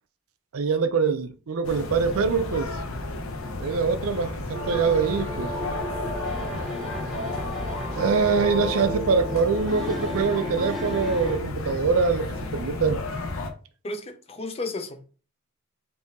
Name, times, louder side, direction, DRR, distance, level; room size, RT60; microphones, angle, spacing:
voice 1, 0.5-2.7 3.6-5.5 8.0-13.0, right 5 dB, 70° right, 0.5 m, -24 dB
sound 1, 1.6-13.5, left 2 dB, 65° left, 0.7 m, -33 dB
sound 2, 4.5-11.4, equal, ahead, 0.9 m, -33 dB
voice 2, 13.8-15.1, left 2 dB, 25° left, 0.4 m, -33 dB
3.6 x 2.7 x 4.0 m
head